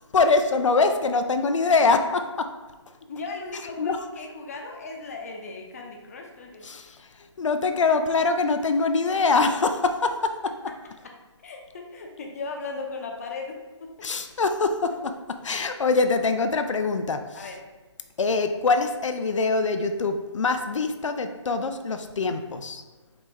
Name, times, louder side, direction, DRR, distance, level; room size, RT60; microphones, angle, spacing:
voice 1, 0.1-2.5 3.8-4.0 6.6-7.0 7.4-10.5 14.0-15.1 15.4-17.5 18.2-22.8, left 4 dB, 85° left, 7 dB, 0.5 m, -24 dB
voice 2, 3.1-6.7 11.4-14.1 17.3-17.6, left 3 dB, 30° left, 1 dB, 0.6 m, -37 dB
5.0 x 3.1 x 3.4 m, 1.2 s
hypercardioid pair, 165°, 15 cm